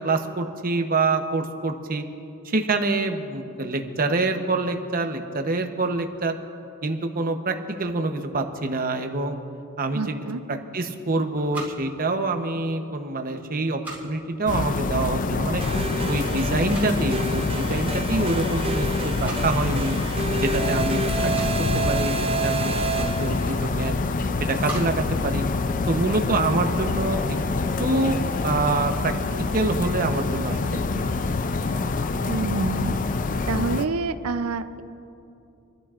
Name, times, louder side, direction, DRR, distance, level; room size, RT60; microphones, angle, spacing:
voice 1, 0.0-2.0 2.4-6.4 6.8-9.4 9.8-10.1 10.5-15.6 16.1-20.0 20.4-21.3 21.7-24.0 24.4-25.4 25.9-27.4 27.8-29.1 29.4-31.1, right 2 dB, 40° right, 5 dB, 0.9 m, -26 dB
voice 2, 9.9-10.4 32.3-33.0 33.5-34.8, right 3 dB, 85° right, 11 dB, 0.6 m, -27 dB
sound 1, 11.2-26.2, right 2 dB, 10° right, 2.5 m, -44 dB
sound 2, 14.5-33.8, left 3 dB, 35° left, 0.4 m, -26 dB
sound 3, 15.6-23.7, right 5 dB, 25° right, 0.4 m, -30 dB
28.5 x 12.0 x 2.5 m, 2.7 s
head